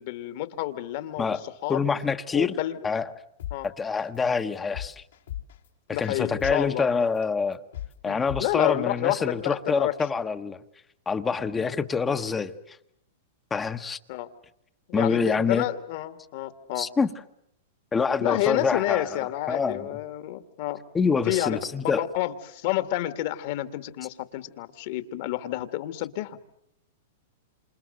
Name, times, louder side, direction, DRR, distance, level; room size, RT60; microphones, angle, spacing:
voice 1, 0.0-1.9 2.3-2.8 3.5-3.7 5.9-6.9 8.0-9.9 11.6-11.7 14.1-14.3 14.9-16.9 18.2-20.8 21.3-21.6 22.0-26.4, left 14 dB, 55° left, 12 dB, 2.0 m, -29 dB
voice 2, 1.7-2.5 2.8-3.1 3.6-5.0 6.0-7.6 8.0-10.6 11.1-12.8 13.5-14.0 14.9-15.7 16.8-17.1 17.9-19.1 19.5-19.8 20.9-22.0, left 5 dB, 15° left, 10 dB, 1.1 m, -26 dB
sound 1, 3.4-3.6 4.0-4.2 4.5-5.7 6.0-6.1 6.4-6.6 7.0-7.2 7.5-7.9 8.3-8.4, left 12 dB, 80° left, 3.5 m, -35 dB
28.0 x 27.5 x 7.8 m, 0.74 s
hypercardioid pair, 135°, 0 cm